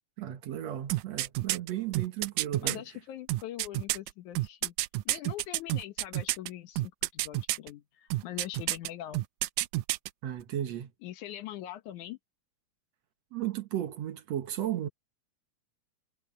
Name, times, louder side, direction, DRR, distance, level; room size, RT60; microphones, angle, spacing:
voice 1, 0.2-2.8 5.1-5.2 10.2-10.9 13.3-14.9, right 11 dB, 65° right, 2.3 m, -34 dB
sound 1, 0.9-2.8 3.3-6.5 6.8-7.7 8.1-8.9 9.1-10.1 10.4-10.5, right 18 dB, 90° right, 2.1 m, -29 dB
voice 2, 2.6-4.7 5.1-9.2 11.0-12.2, left 13 dB, 80° left, 2.6 m, -42 dB
omnidirectional pair, 3.4 m